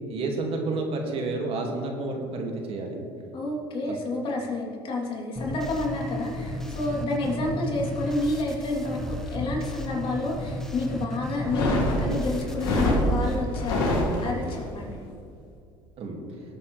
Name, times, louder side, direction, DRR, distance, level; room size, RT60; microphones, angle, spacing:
voice 1, 0.1-3.0 7.3-7.4 16.0-16.2, right 3 dB, 55° right, 1 dB, 2.2 m, -30 dB
voice 2, 3.3-13.9 14.2-15.0, left 2 dB, 50° left, -2 dB, 3.2 m, -29 dB
sound 1, 5.4-13.4, left 1 dB, 5° left, 1.6 m, -34 dB
sound 2, 11.4-14.6, left 1 dB, 90° left, 2.6 m, -25 dB
18.0 x 9.2 x 3.3 m, 2.4 s
supercardioid pair, 85°, 12 cm